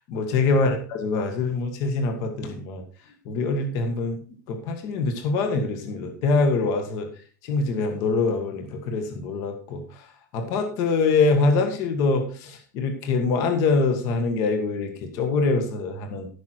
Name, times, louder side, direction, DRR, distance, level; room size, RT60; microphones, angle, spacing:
voice 1, 0.1-2.8 3.3-4.2 4.5-7.1 7.4-10.1 10.3-16.3, left 3 dB, 35° left, 5 dB, 1.7 m, -24 dB
14.5 x 6.4 x 4.6 m, 0.41 s
supercardioid pair, 175°, 10 cm